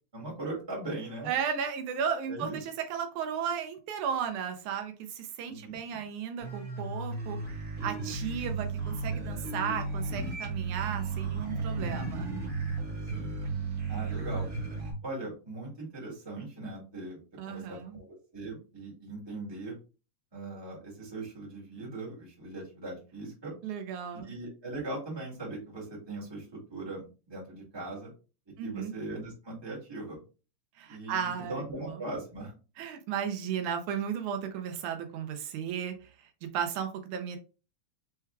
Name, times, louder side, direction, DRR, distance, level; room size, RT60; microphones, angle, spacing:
voice 1, 0.1-1.3 2.3-2.6 5.5-6.1 13.1-13.4 13.9-14.5 15.0-17.2 17.4-19.7 20.3-23.5 24.2-28.1 28.6-30.2 30.9-32.5, right 2 dB, 10° right, -5 dB, 1.6 m, -40 dB
voice 2, 1.3-7.4 7.8-12.3 17.4-18.0 23.6-24.3 28.6-28.9 30.8-32.0 32.8-36.1 36.4-37.4, right 8 dB, 80° right, 6 dB, 2.1 m, -34 dB
sound 1, 6.4-14.9, right 3 dB, 40° right, 1.4 m, -34 dB
4.5 x 4.5 x 2.3 m, 0.33 s
omnidirectional pair, 3.4 m